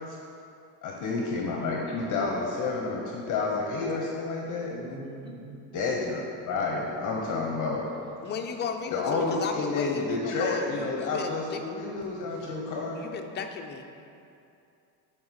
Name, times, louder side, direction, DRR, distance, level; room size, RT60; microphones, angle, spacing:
voice 1, 0.8-4.7 5.7-7.9 8.9-13.0, left 3 dB, 45° left, -1 dB, 0.8 m, -30 dB
voice 2, 4.7-5.6 7.9-8.3 12.6-12.7, right 1 dB, 10° right, -2 dB, 0.9 m, -43 dB
voice 3, 8.2-11.9 13.0-13.8, left 5 dB, 25° left, 5 dB, 0.4 m, -35 dB
7.6 x 3.8 x 4.2 m, 2.6 s
cardioid pair, 120°, 43 cm